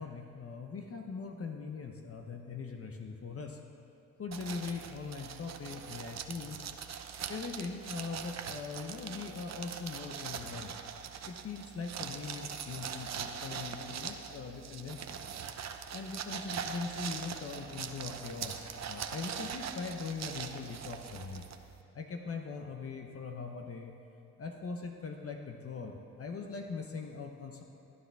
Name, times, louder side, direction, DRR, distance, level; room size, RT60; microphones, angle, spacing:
voice 1, 0.0-3.6 4.2-6.7 7.3-10.8 11.3-15.2 15.9-21.4 21.9-23.9 24.4-27.6, left 4 dB, 40° left, 3 dB, 1.0 m, -41 dB
sound 1, 4.3-21.8, right 7 dB, 50° right, 0.8 m, -42 dB
17.0 x 9.6 x 3.5 m, 2.9 s
cardioid pair, 75°, 34 cm